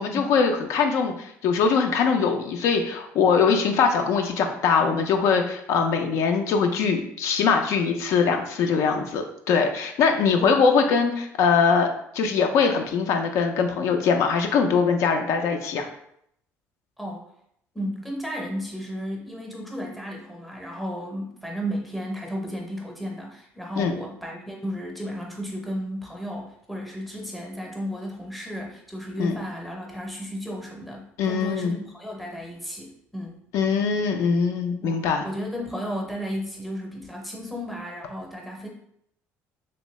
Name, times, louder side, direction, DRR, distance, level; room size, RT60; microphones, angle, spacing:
voice 1, 0.0-15.9 23.8-23.9 29.2-29.3 31.2-31.8 33.5-35.2, left 5 dB, 65° left, 4 dB, 0.4 m, -22 dB
voice 2, 17.7-33.3 34.8-38.7, equal, ahead, 0 dB, 0.7 m, -33 dB
3.0 x 2.6 x 3.1 m, 0.72 s
cardioid pair, 140°, 6 cm